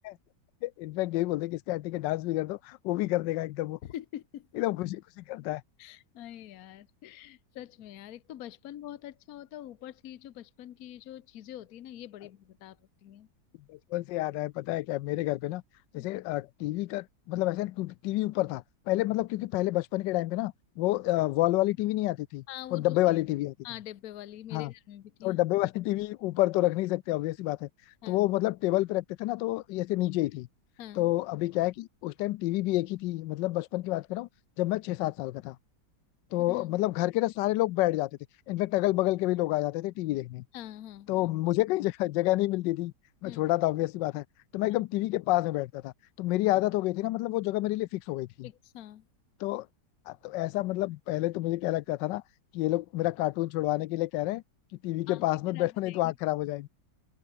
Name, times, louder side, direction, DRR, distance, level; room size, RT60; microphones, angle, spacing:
voice 1, 0.6-3.8 4.6-5.6 13.7-15.6 15.9-22.4 22.7-23.5 24.5-24.7 25.2-27.7 28.1-30.5 31.0-34.3 34.6-35.6 36.3-38.1 38.5-40.4 41.1-42.9 43.2-44.2 44.5-45.9 46.2-48.5 49.4-49.7 50.1-52.2 52.5-54.4 54.8-56.7, left 17 dB, 85° left, 1.2 m, -29 dB
voice 2, 3.8-4.6 5.8-12.8 13.0-13.3 16.0-16.1 22.5-23.2 23.6-25.4 28.0-28.2 30.8-31.1 36.5-36.8 40.5-41.1 43.2-43.4 48.4-49.1 55.1-56.0, left 12 dB, 60° left, 1.2 m, -44 dB
open air
omnidirectional pair, 1.9 m